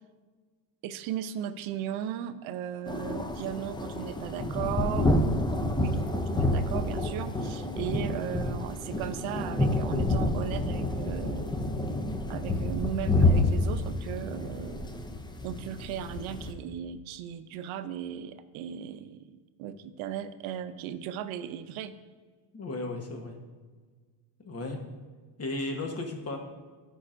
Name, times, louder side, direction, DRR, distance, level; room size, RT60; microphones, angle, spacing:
voice 1, 0.8-11.5 12.3-14.9 15.4-19.3 19.6-21.9, right 9 dB, 70° right, 11 dB, 0.6 m, -36 dB
sound 1, 2.9-16.5, left 2 dB, 10° left, 0.4 m, -28 dB
voice 2, 22.5-23.4 24.4-24.9 25.4-26.4, left 2 dB, 30° left, 3 dB, 1.2 m, -35 dB
12.0 x 5.4 x 2.5 m, 1.5 s
cardioid pair, 115°, 50 cm